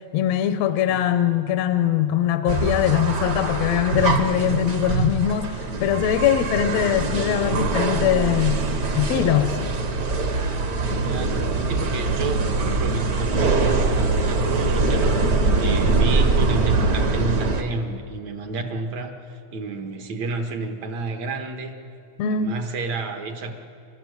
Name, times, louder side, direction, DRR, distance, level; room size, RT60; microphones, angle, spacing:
voice 1, 0.1-8.6 8.9-9.6 22.2-22.6, left 10 dB, 75° left, 10 dB, 1.8 m, -22 dB
cm glass, 2.5-17.6, right 3 dB, 45° right, 1.3 m, -23 dB
voice 2, 11.0-21.7 22.3-23.6, right 3 dB, 70° right, 5 dB, 2.8 m, -31 dB
28.0 x 13.0 x 8.0 m, 2.5 s
omnidirectional pair, 3.3 m